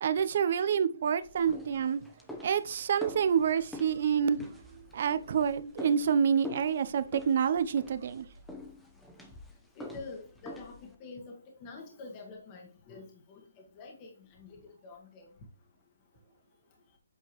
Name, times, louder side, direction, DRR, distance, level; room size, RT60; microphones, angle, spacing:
voice 1, 0.0-2.0 2.4-4.6 4.9-8.3, right 7 dB, 50° right, 0.6 m, -28 dB
sound 1, 1.2-11.0, left 1 dB, 5° left, 0.9 m, -46 dB
voice 2, 9.8-15.3, left 3 dB, 25° left, 1.3 m, -47 dB
8.1 x 4.5 x 3.1 m
hypercardioid pair, 155°, 0 cm